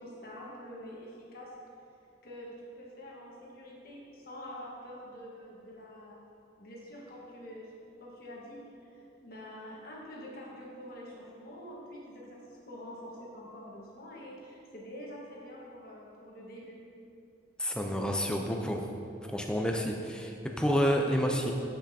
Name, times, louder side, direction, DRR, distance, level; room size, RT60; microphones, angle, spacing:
voice 1, 0.0-1.5 2.2-6.2 6.6-16.8, equal, 55° left, -4 dB, 1.3 m, -46 dB
voice 2, 17.6-18.8 19.3-21.5, equal, 5° left, 2 dB, 0.4 m, -29 dB
7.5 x 7.1 x 2.7 m, 2.7 s
head